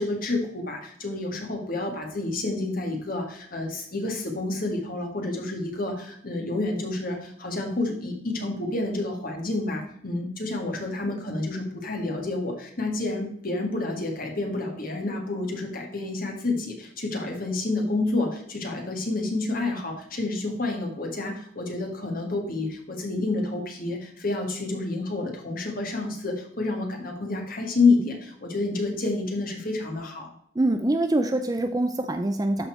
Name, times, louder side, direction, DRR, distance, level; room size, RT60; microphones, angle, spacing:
voice 1, 0.0-30.3, left 2 dB, 45° left, 2 dB, 1.8 m, -29 dB
voice 2, 30.6-32.7, right 1 dB, 20° right, 7 dB, 0.4 m, -24 dB
12.5 x 4.3 x 4.4 m, 0.66 s
head